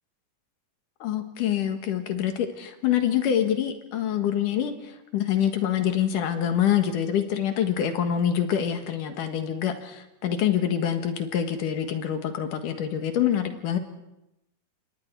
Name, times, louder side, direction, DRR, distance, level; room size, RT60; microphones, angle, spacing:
voice 1, 1.0-13.8, left 9 dB, 85° left, 7 dB, 3.2 m, -26 dB
28.5 x 24.5 x 4.7 m, 0.88 s
omnidirectional pair, 3.6 m